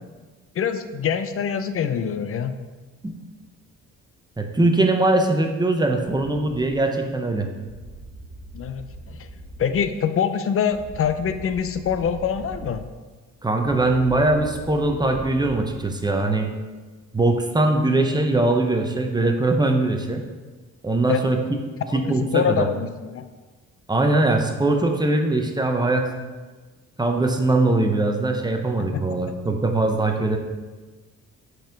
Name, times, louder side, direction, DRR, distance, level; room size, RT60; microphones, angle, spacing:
voice 1, 0.6-2.6 8.5-9.3 9.6-12.9 21.1-21.3 21.9-23.3 28.8-29.2, left 7 dB, 45° left, 10 dB, 0.6 m, -25 dB
voice 2, 4.4-7.5 13.4-16.5 17.1-20.2 20.8-21.6 21.9-22.7 23.9-26.1 27.0-30.4, right 2 dB, 15° right, 4 dB, 0.8 m, -21 dB
sound 1, 7.7-9.8 10.7-12.7 13.6-15.6, right 2 dB, 50° right, 1.5 m, -40 dB
5.9 x 4.6 x 5.1 m, 1.3 s
cardioid pair, 90°, 30 cm